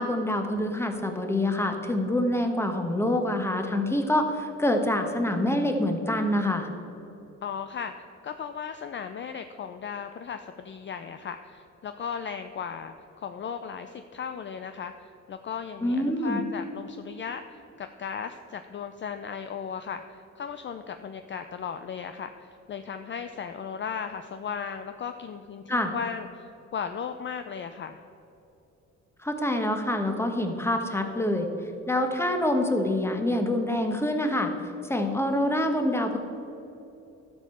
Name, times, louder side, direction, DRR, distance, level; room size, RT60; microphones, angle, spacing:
voice 1, 0.0-6.7 15.8-16.4 25.7-25.9 29.2-31.5 31.9-34.5 34.9-36.2, left 1 dB, 10° left, 5 dB, 1.3 m, -26 dB
voice 2, 7.4-7.9 8.2-28.0, left 7 dB, 40° left, 8 dB, 0.5 m, -36 dB
12.0 x 5.3 x 6.9 m, 2.9 s
cardioid pair, 90°, 30 cm